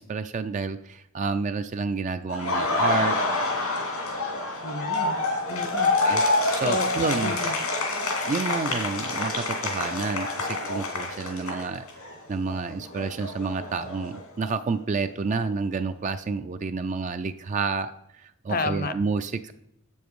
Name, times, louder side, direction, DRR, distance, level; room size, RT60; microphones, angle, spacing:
voice 1, 0.0-3.2 6.0-6.2 6.5-7.3 8.2-11.8 12.3-19.5, right 4 dB, 35° right, 9 dB, 0.4 m, -29 dB
Laughter, 2.3-12.1 12.4-14.5, left 2 dB, 85° left, 2.3 m, -27 dB
voice 2, 4.6-5.2 5.5-5.9 6.4-6.9 7.2-7.6 18.5-18.9, left 3 dB, 40° left, 12 dB, 0.7 m, -31 dB
7.9 x 7.1 x 4.7 m, 0.79 s
head